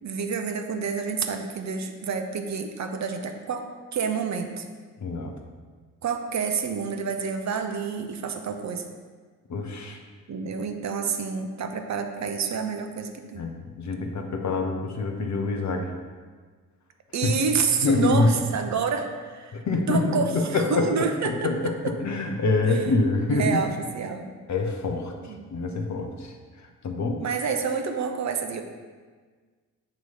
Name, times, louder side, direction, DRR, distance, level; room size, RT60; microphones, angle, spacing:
voice 1, 0.0-4.6 6.0-8.8 10.3-13.5 17.1-21.9 22.6-22.8 23.3-24.3 25.2-25.5 27.2-28.6, right 5 dB, 35° right, 6 dB, 0.8 m, -28 dB
voice 2, 5.0-5.3 9.5-10.0 13.3-15.9 17.8-18.3 19.5-20.9 21.2-21.6 21.8-23.6 24.5-25.1 25.5-26.3 26.8-27.2, left 3 dB, 35° left, 4 dB, 1.0 m, -25 dB
8.9 x 3.1 x 5.5 m, 1.5 s
figure-of-eight pair, 40°, 49 cm